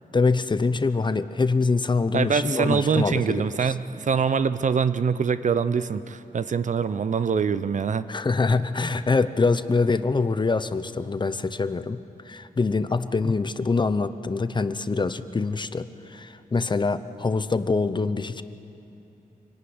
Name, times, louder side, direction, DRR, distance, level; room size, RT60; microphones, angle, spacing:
voice 1, 0.1-3.4 8.1-12.0 12.3-18.4, left 4 dB, 30° left, 12 dB, 0.8 m, -24 dB
voice 2, 2.1-8.1, right 6 dB, 55° right, 13 dB, 0.7 m, -24 dB
25.5 x 18.0 x 9.6 m, 2.8 s
wide cardioid pair, 105°, 15 cm